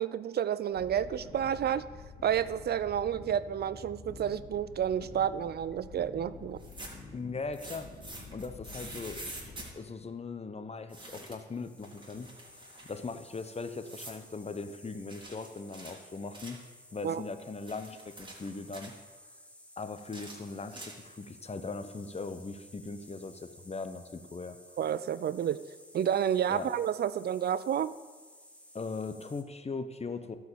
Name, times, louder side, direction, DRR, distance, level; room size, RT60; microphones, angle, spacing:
voice 1, 0.0-1.8 2.2-6.6 17.0-17.2 24.8-25.6 25.9-27.9, right 9 dB, 55° right, 16 dB, 0.4 m, -30 dB
sound 1, 0.7-9.7, left 4 dB, 60° left, 2.2 m, -48 dB
sound 2, 6.5-7.1 7.5-9.7 10.9-11.5 11.8-13.0 13.8-14.2 15.1-16.7 17.4-19.0 20.0-21.2, right 2 dB, 25° right, 3.4 m, -46 dB
voice 2, 7.1-7.9 8.3-9.3 9.7-12.3 12.9-18.9 19.8-24.6 26.5-26.7 28.7-30.4, left 4 dB, 30° left, 10 dB, 0.9 m, -39 dB
sound 3, 11.5-29.4, left 1 dB, 5° left, 1.7 m, -56 dB
12.0 x 4.9 x 6.9 m, 1.5 s
supercardioid pair, 45°, 20 cm